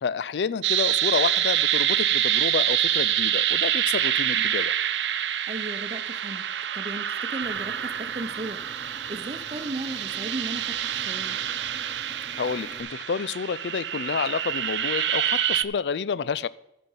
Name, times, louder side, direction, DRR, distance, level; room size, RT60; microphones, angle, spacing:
voice 1, 0.0-4.7 12.4-16.5, left 6 dB, 75° left, 17 dB, 0.4 m, -29 dB
sound 1, 0.6-15.6, right 11 dB, 90° right, 0.6 m, -26 dB
voice 2, 5.5-8.6 9.1-11.4, right 1 dB, 35° right, 10 dB, 0.8 m, -36 dB
sound 2, 7.4-12.8, equal, 5° right, 1.5 m, -47 dB
13.0 x 5.3 x 7.2 m, 0.87 s
head